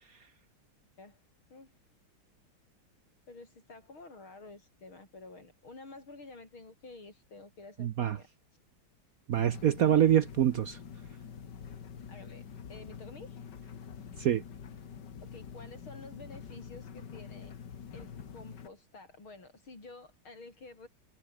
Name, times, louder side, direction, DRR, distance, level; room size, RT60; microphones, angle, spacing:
voice 1, 3.3-8.3 9.8-10.1 12.1-13.5 15.2-17.5 17.9-20.9, left 3 dB, 85° left, 7.2 m, -50 dB
voice 2, 7.8-8.2 9.3-10.8 14.2-14.4, right 10 dB, 60° right, 0.9 m, -25 dB
sound 1, 9.3-18.7, left 7 dB, 60° left, 2.3 m, -46 dB
omnidirectional pair, 2.2 m